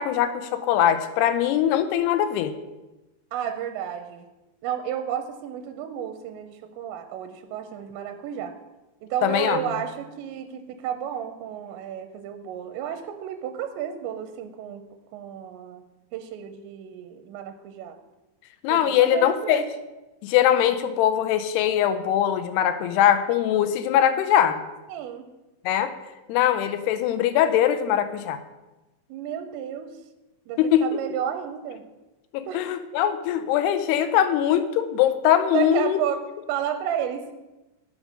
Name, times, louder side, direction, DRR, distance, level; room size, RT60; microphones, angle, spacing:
voice 1, 0.0-2.5 9.2-9.6 18.6-19.6 20.2-24.6 25.6-25.9 26.3-28.4 30.6-30.8 32.3-36.0, left 10 dB, 80° left, 10 dB, 2.5 m, -21 dB
voice 2, 3.3-4.3 4.6-8.6 9.0-14.8 15.1-15.8 16.1-18.0 18.7-19.8 24.9-25.3 29.1-29.9 30.5-31.8 32.5-32.6 35.5-36.2 36.5-37.3, right 9 dB, 80° right, 7 dB, 2.8 m, -32 dB
12.5 x 5.1 x 6.3 m, 1.1 s
omnidirectional pair, 5.3 m